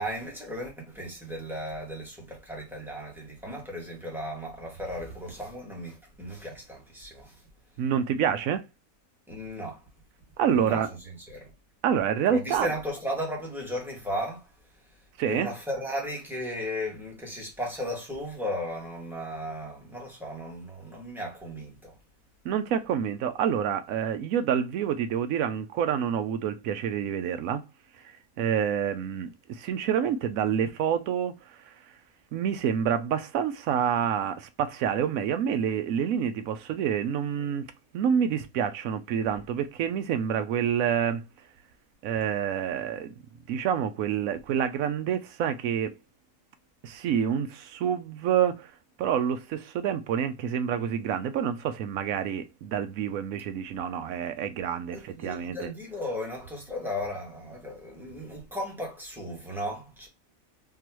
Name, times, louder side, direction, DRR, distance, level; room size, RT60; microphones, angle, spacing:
voice 1, 0.0-7.3 9.3-9.8 10.5-11.0 11.3-11.5 12.2-14.5 15.2-21.9 54.9-60.1, equal, ahead, 1.4 m, -35 dB
voice 2, 7.8-8.7 10.4-10.9 11.8-12.7 15.2-15.5 22.4-27.6 28.4-31.4 32.3-37.7 37.9-41.2 42.0-43.1 43.5-45.9 46.8-48.7 49.0-55.7, right 8 dB, 75° right, 1.0 m, -27 dB
3.8 x 2.8 x 2.9 m
omnidirectional pair, 1.5 m